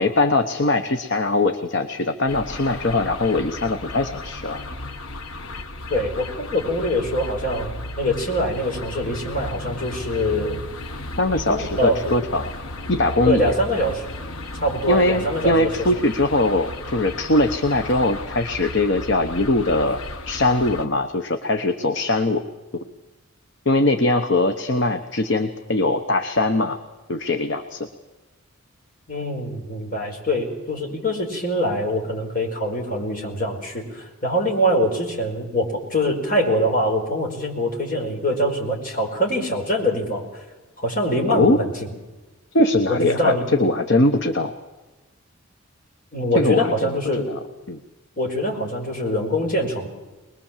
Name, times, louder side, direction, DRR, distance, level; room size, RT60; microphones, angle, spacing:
voice 1, 0.0-4.6 11.2-12.5 12.9-13.6 14.9-20.0 20.3-22.4 23.7-26.8 27.1-27.9 41.3-41.6 42.5-44.5 46.3-47.0 47.3-47.4 47.7-47.8, left 2 dB, 55° left, 6 dB, 1.0 m, -21 dB
sound 1, 2.3-20.9, left 1 dB, 80° left, 1.3 m, -34 dB
voice 2, 5.9-10.6 11.3-12.1 13.2-14.1 14.5-15.7 29.1-40.2 40.8-41.9 42.9-43.4 46.1-47.3 48.2-49.9, equal, 40° left, 0 dB, 4.8 m, -24 dB
23.0 x 21.0 x 7.4 m, 1.2 s
head